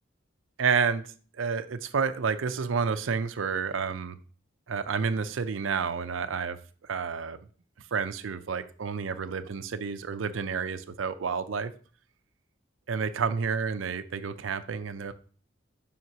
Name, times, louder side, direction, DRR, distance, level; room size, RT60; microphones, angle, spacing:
voice 1, 0.6-1.0 1.4-4.2 4.7-6.6 6.9-7.4 7.9-11.7 12.9-15.1, right 5 dB, 90° right, 11 dB, 0.5 m, -30 dB
7.6 x 5.7 x 2.8 m, 0.40 s
head